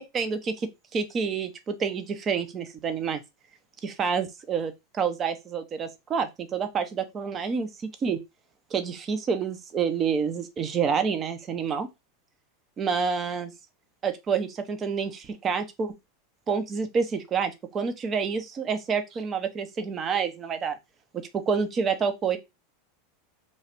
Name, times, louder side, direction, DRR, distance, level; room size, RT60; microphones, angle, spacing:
voice 1, 0.1-3.2 3.8-7.7 8.0-8.2 8.7-11.9 12.8-13.5 14.0-15.9 16.5-20.8 21.5-22.4, right 6 dB, 30° right, 0.7 m, -28 dB
3.1 x 2.4 x 4.3 m
hypercardioid pair, 100°, 0 cm